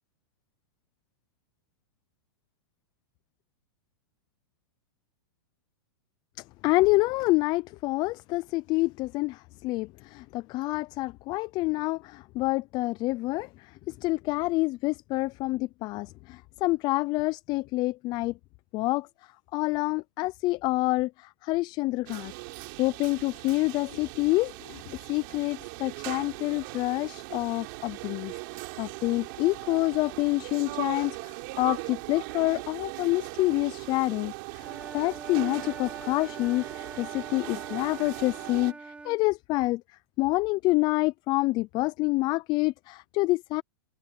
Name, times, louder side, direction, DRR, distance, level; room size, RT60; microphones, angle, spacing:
voice 1, 6.6-18.4 18.7-22.3 22.8-34.7 34.9-39.8 40.2-43.6, left 21 dB, 35° left, 0.4 m, -27 dB
sound 1, 22.1-38.7, right 28 dB, 50° right, 4.9 m, -39 dB
Wind instrument woodwind instrument, 34.6-39.2, right 3 dB, 10° right, 2.5 m, -44 dB
open air
hypercardioid pair, 135°, 13 cm